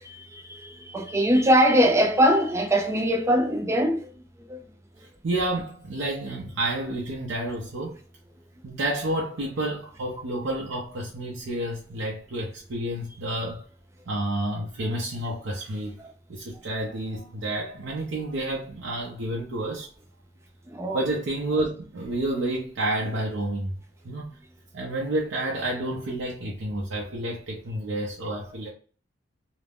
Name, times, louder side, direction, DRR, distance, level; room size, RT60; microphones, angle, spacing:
voice 1, 0.1-4.1 4.5-4.6 20.7-21.0, equal, 15° right, 0.4 m, -22 dB
voice 2, 5.2-8.0 8.6-13.7 14.1-15.9 16.3-19.9 20.9-23.7 24.0-24.4 24.7-28.7, right 1 dB, 80° right, 0.6 m, -30 dB
2.4 x 2.0 x 3.4 m
head